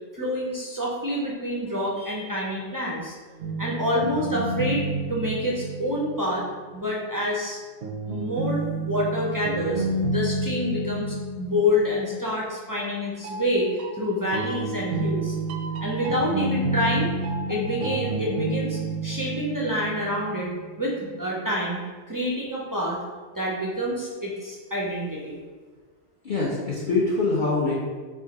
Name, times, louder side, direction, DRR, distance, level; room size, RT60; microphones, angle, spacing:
voice 1, 0.1-3.1 3.6-6.4 6.7-7.6 8.1-13.7 14.0-15.4 15.8-17.1 17.5-20.5 20.8-21.8 22.1-23.0 23.4-25.4, left 1 dB, 30° right, -4 dB, 0.3 m, -27 dB
sound 1, 3.4-6.5 7.8-12.4 13.2-20.9, right 2 dB, 60° right, 0.7 m, -30 dB
voice 2, 26.2-27.7, left 3 dB, 45° left, -7 dB, 0.8 m, -24 dB
4.7 x 2.5 x 4.1 m, 1.5 s
omnidirectional pair, 1.2 m